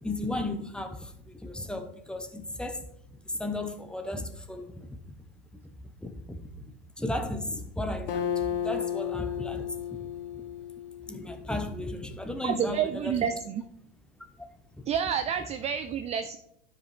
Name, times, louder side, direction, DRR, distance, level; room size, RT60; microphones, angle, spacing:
voice 1, 0.0-2.9 3.2-4.9 6.0-6.5 7.0-10.0 10.3-10.4 11.1-13.3 14.8-14.9, left 1 dB, 5° left, 0.8 m, -35 dB
Acoustic guitar, 8.1-11.7, left 9 dB, 70° left, 1.3 m, -33 dB
voice 2, 12.4-13.6 14.9-16.4, right 8 dB, 25° right, 0.4 m, -29 dB
12.0 x 4.9 x 3.3 m
hypercardioid pair, 105°, 29 cm